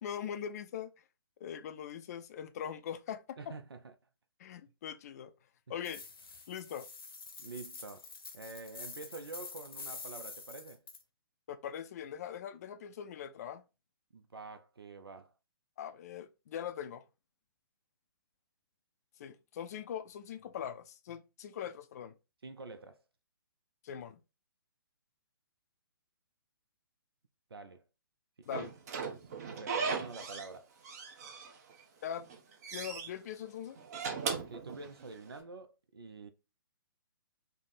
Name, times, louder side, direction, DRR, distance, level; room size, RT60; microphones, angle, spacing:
voice 1, 0.0-0.9 1.4-3.4 4.4-5.3 5.7-6.0 6.5-6.9 11.5-13.6 15.8-17.0 19.2-22.1 23.8-24.2 28.5-28.7 32.0-32.3 32.7-33.8, left 9 dB, 45° left, 0.4 m, -41 dB
voice 2, 3.4-3.9 7.4-8.1 8.3-10.8 14.1-15.3 22.4-23.0 27.5-27.8 28.5-28.7 29.0-29.2 29.5-30.7 34.5-36.3, right 3 dB, 85° right, 0.4 m, -47 dB
sound 1, 5.8-11.0, left 4 dB, 75° left, 0.9 m, -47 dB
Slam / Squeak, 28.5-30.5 30.8-31.8 32.2-33.1 33.8-35.3, right 5 dB, 45° right, 0.7 m, -38 dB
3.4 x 2.0 x 4.0 m
figure-of-eight pair, 130°, 12 cm